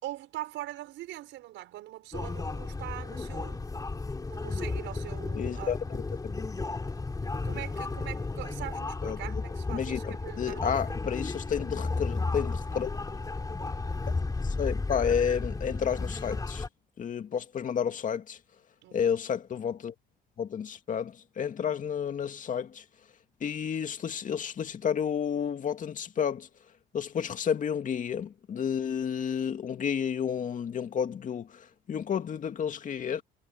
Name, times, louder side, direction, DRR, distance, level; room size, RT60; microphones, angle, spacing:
voice 1, 0.0-3.7 4.3-5.7 7.4-11.0 18.8-19.1, right 15 dB, 70° right, 5.6 m, -42 dB
sound 1, 2.1-16.7, left 3 dB, 20° left, 3.2 m, -33 dB
voice 2, 5.3-6.3 9.0-9.4 9.7-13.1 14.4-16.7 17.0-18.4 18.9-19.9 20.4-22.8 23.4-26.5 26.9-33.2, left 8 dB, 40° left, 2.3 m, -31 dB
cardioid pair, 105°, 20 cm